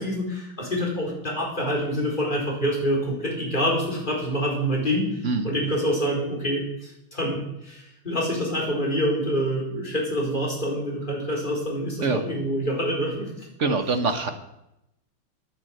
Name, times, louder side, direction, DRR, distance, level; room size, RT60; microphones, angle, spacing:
voice 1, 0.0-13.5, equal, 20° left, -2 dB, 4.5 m, -26 dB
voice 2, 13.6-14.3, right 4 dB, 40° right, 7 dB, 1.3 m, -24 dB
12.5 x 9.5 x 7.8 m, 0.84 s
omnidirectional pair, 2.4 m